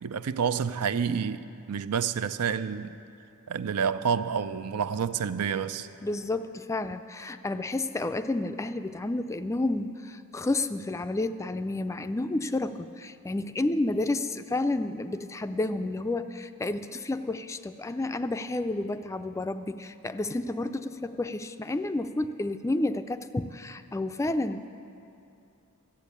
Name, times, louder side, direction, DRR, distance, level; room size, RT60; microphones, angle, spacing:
voice 1, 0.0-2.9 3.5-5.9, right 7 dB, 90° right, 0.5 m, -29 dB
voice 2, 6.0-24.6, left 2 dB, 15° left, 0.3 m, -30 dB
13.5 x 8.1 x 8.3 m
head